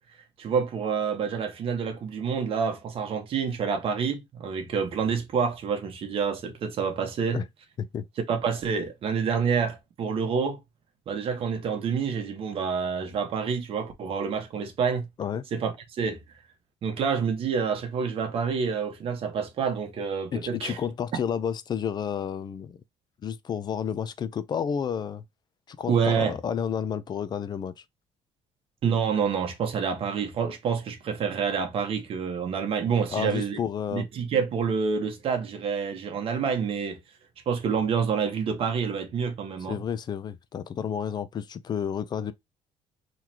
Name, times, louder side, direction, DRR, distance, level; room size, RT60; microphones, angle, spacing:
voice 1, 0.4-7.4 8.3-10.6 11.1-15.1 15.5-15.7 16.0-16.2 16.8-20.8 25.9-26.4 28.8-33.6 33.9-37.0 37.5-39.8, right 6 dB, 50° right, 1.2 m, -28 dB
voice 2, 20.3-22.8 23.2-25.2 25.7-27.8 33.1-34.1 39.7-42.3, left 8 dB, 35° left, 0.5 m, -31 dB
3.9 x 3.1 x 2.8 m
cardioid pair, 135°, 12 cm